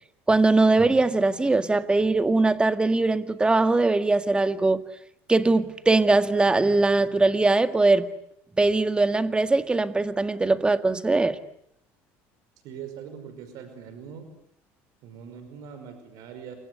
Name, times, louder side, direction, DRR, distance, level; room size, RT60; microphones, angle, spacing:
voice 1, 0.3-4.8 5.3-8.1 8.6-11.4, right 3 dB, 15° right, 1.9 m, -21 dB
voice 2, 12.6-14.3 15.0-16.6, right 7 dB, 70° right, 5.3 m, -41 dB
29.0 x 25.0 x 8.2 m
supercardioid pair, 100°, 7 cm